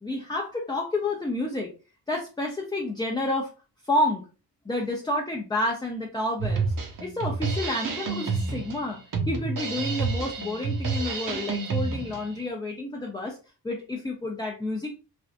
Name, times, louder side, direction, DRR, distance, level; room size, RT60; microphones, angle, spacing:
voice 1, 0.0-1.7 2.1-3.5 3.8-4.2 4.6-6.7 7.0-9.0 9.3-13.4 13.6-14.9, left 1 dB, 10° left, 0 dB, 0.5 m, -29 dB
Drum kit, 6.4-12.4, right 4 dB, 55° right, 0.8 m, -29 dB
3.4 x 2.4 x 2.4 m, 0.34 s
cardioid pair, 85°, 40 cm